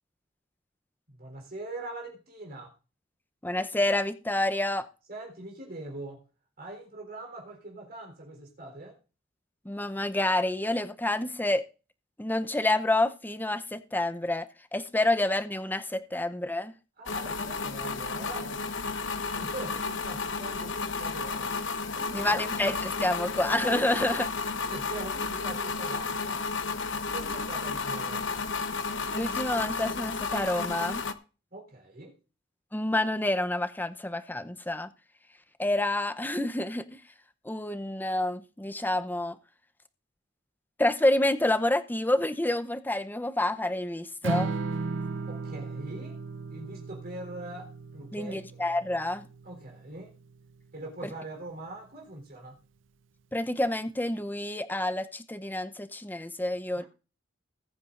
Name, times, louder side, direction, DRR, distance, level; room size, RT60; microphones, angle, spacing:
voice 1, 1.1-2.7 5.1-6.2 6.6-9.0 17.0-18.6 19.3-21.5 21.9-22.6 24.7-26.4 27.1-28.5 31.5-32.1 45.3-46.2 46.5-48.6 49.4-50.2 50.7-52.6 56.8-56.9, right 2 dB, 55° right, 3.8 m, -42 dB
voice 2, 3.4-4.9 9.6-11.7 12.2-14.5 14.7-16.7 22.1-24.3 29.1-31.0 32.7-34.9 35.6-36.8 37.4-39.4 40.8-44.5 48.1-49.3 53.3-56.8, left 1 dB, 10° left, 0.7 m, -28 dB
sound 1, 17.1-31.1, left 4 dB, 70° left, 0.9 m, -32 dB
Strum, 44.2-50.5, right 3 dB, 80° right, 0.6 m, -36 dB
20.5 x 9.4 x 2.6 m
head